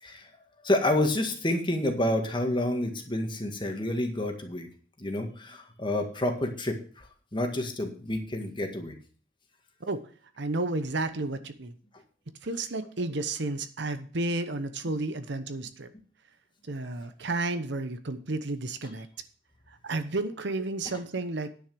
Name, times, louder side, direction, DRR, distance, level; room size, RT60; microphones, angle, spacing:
voice 1, 0.6-4.7 5.0-7.1 7.3-9.0, left 1 dB, 25° left, 4 dB, 1.8 m, -29 dB
voice 2, 10.4-11.8 12.4-15.9 16.7-19.1 19.8-21.5, right 2 dB, 65° right, 10 dB, 1.0 m, -32 dB
10.0 x 6.4 x 6.9 m, 0.42 s
head